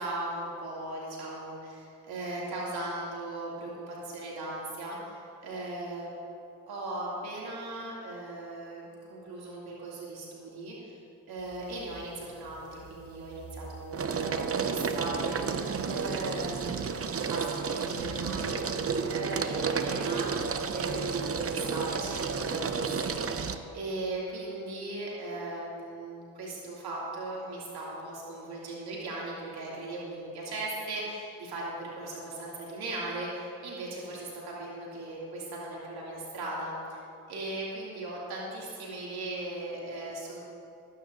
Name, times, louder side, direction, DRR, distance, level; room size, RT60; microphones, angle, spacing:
voice 1, 0.0-6.1 6.7-11.0 11.3-37.0 37.3-40.4, right 2 dB, 65° right, -5 dB, 2.9 m, -38 dB
sound 1, 11.5-12.0 12.4-23.6, right 5 dB, 35° right, 0.9 m, -32 dB
23.5 x 9.5 x 2.7 m, 2.7 s
hypercardioid pair, 40°, 41 cm